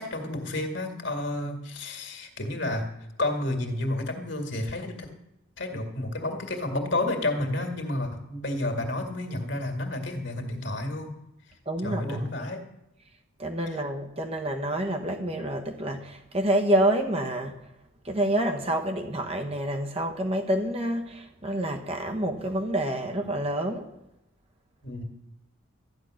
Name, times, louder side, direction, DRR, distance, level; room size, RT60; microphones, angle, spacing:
voice 1, 0.0-2.9 3.2-5.1 5.6-11.1 11.8-12.6 24.8-25.0, left 1 dB, 55° left, 4 dB, 2.2 m, -30 dB
voice 2, 11.7-12.5 13.4-17.6 18.0-23.8, right 1 dB, 30° right, 3 dB, 1.1 m, -28 dB
13.5 x 10.0 x 6.5 m, 0.87 s
head